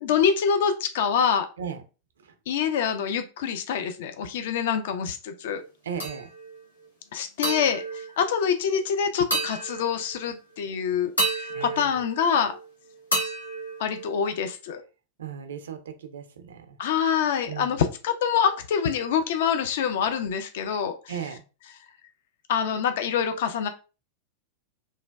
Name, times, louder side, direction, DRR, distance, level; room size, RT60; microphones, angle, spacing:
voice 1, 0.0-1.5 2.5-5.6 7.1-12.6 13.8-14.8 16.8-20.9 22.5-23.7, left 7 dB, 55° left, 7 dB, 0.3 m, -25 dB
voice 2, 5.8-6.3 11.5-11.9 15.2-16.8 17.5-17.8 21.1-21.4, right 7 dB, 65° right, 7 dB, 0.5 m, -36 dB
sound 1, 6.0-6.6 7.4-8.9 9.3-10.3 11.2-12.7 13.1-14.5, right 1 dB, 80° left, 1.1 m, -31 dB
3.1 x 2.1 x 2.2 m, 0.32 s
figure-of-eight pair, 90°, 0 cm